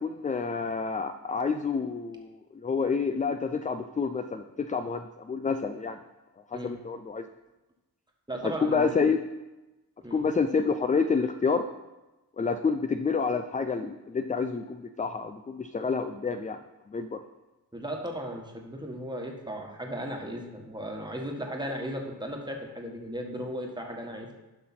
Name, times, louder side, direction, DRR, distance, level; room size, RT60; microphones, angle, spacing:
voice 1, 0.0-6.0 6.5-7.2 8.4-9.2 10.1-11.6 12.4-16.6 16.9-17.2, left 5 dB, 20° left, 8 dB, 0.3 m, -28 dB
voice 2, 8.3-8.9 10.0-10.2 17.7-24.3, equal, 10° right, 1 dB, 1.4 m, -36 dB
11.5 x 5.8 x 4.2 m, 1.1 s
wide cardioid pair, 95°, 37 cm